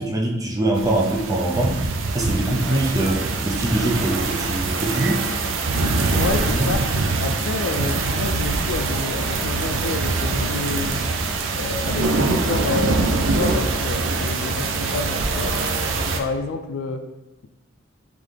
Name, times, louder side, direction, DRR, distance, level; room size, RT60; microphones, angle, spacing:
voice 1, 0.0-1.8 2.1-5.3 6.5-6.7, right 1 dB, 20° right, 0 dB, 0.5 m, -23 dB
sound 1, 0.8-16.2, right 3 dB, 85° right, 0.4 m, -23 dB
voice 2, 6.1-6.8 7.2-11.0 11.5-15.5 16.2-17.0, left 3 dB, 90° left, 7 dB, 0.4 m, -29 dB
3.9 x 3.2 x 3.3 m, 1.0 s
head